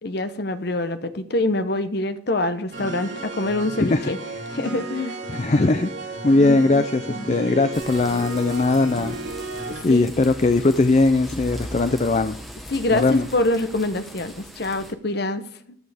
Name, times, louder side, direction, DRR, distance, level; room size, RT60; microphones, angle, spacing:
voice 1, 0.0-4.2 4.5-5.2 6.4-6.9 7.1-7.3 8.6-9.0 9.7-10.1 12.7-15.8, left 2 dB, 55° left, 10 dB, 0.9 m, -26 dB
sound 1, 2.7-9.8, right 2 dB, 65° right, 4.6 m, -33 dB
voice 2, 3.8-4.1 5.3-9.2 9.8-12.4 12.9-13.3, left 3 dB, 35° left, 10 dB, 0.4 m, -20 dB
sound 2, 7.7-14.9, equal, ahead, 1.2 m, -39 dB
14.5 x 11.0 x 3.5 m, 0.63 s
head